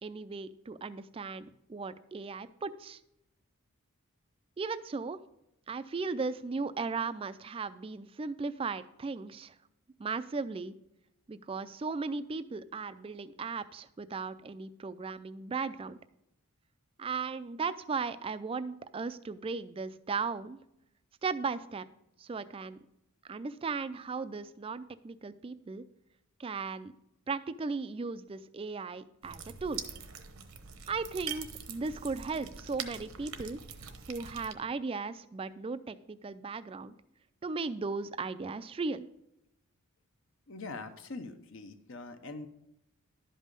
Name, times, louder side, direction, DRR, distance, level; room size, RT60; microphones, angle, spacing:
voice 1, 0.0-3.0 4.6-5.2 5.7-9.5 10.0-10.7 11.3-16.0 17.0-20.6 21.2-21.9 22.2-22.8 23.3-25.8 26.4-26.9 27.3-29.8 30.9-33.6 34.1-36.9 37.4-39.1, right 4 dB, 25° right, 14 dB, 0.3 m, -36 dB
sound 1, 29.2-34.5, right 7 dB, 75° right, 0.9 m, -43 dB
voice 2, 40.5-42.5, left 3 dB, 60° left, 7 dB, 0.7 m, -43 dB
11.5 x 5.4 x 5.2 m, 0.83 s
head